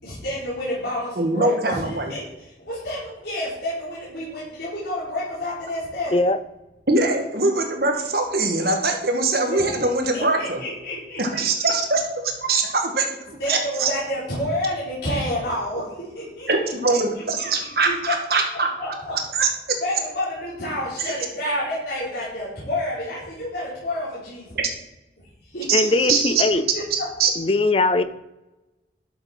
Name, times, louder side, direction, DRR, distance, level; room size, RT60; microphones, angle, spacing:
voice 1, 0.0-2.2 2.6-6.1 9.5-9.7 10.1-11.7 13.4-15.8 16.1-17.7 18.1-18.2 18.5-19.2 19.8-24.5 25.5-25.9 26.2-26.8, left 1 dB, 65° left, -9 dB, 4.1 m, -29 dB
voice 2, 1.2-2.1 6.9-10.6 11.2-13.9 16.5-18.7 19.3-19.8 24.6-24.7 25.7-26.3 26.9-27.3, right 3 dB, 60° right, 3 dB, 1.6 m, -22 dB
voice 3, 25.7-26.6 27.4-28.0, left 2 dB, 30° left, 12 dB, 0.4 m, -20 dB
12.0 x 6.7 x 4.4 m, 0.98 s
head